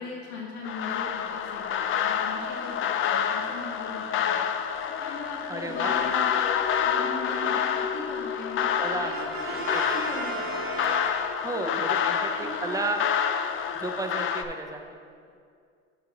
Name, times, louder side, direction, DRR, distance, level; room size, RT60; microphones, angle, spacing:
voice 1, 0.0-4.2 4.6-9.2 9.5-10.6 11.5-12.8, left 3 dB, 75° left, -3 dB, 1.3 m, -39 dB
sound 1, 0.6-14.4, left 8 dB, 45° left, 0.5 m, -28 dB
voice 2, 5.5-6.0 8.8-9.3 9.7-9.8 11.4-13.0 13.7-15.0, right 2 dB, 10° right, 4 dB, 0.7 m, -33 dB
Brass instrument, 9.1-11.8, right 3 dB, 45° right, 1.3 m, -35 dB
8.6 x 5.9 x 3.0 m, 2.3 s
supercardioid pair, 75°, 30 cm